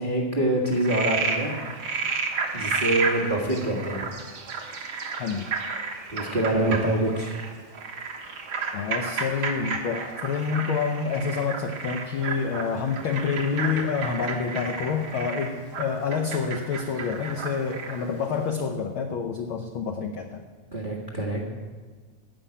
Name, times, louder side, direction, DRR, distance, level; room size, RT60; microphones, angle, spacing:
voice 1, 0.0-1.5 2.0-4.0 6.1-7.4 20.7-21.5, right 1 dB, 25° right, -2 dB, 1.2 m, -26 dB
Frog, 0.6-18.1, right 4 dB, 50° right, 1.8 m, -32 dB
voice 2, 5.2-5.5 8.7-20.4, left 5 dB, 75° left, 5 dB, 1.2 m, -28 dB
15.5 x 5.8 x 9.9 m, 1.5 s
omnidirectional pair, 3.4 m